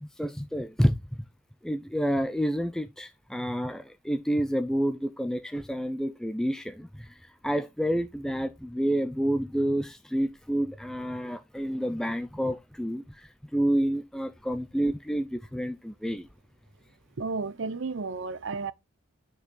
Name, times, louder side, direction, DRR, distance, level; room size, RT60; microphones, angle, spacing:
voice 1, 0.0-1.3 1.6-16.3, equal, 5° left, 0.4 m, -29 dB
voice 2, 17.2-18.7, right 4 dB, 60° right, 0.6 m, -32 dB
9.4 x 4.7 x 3.7 m
head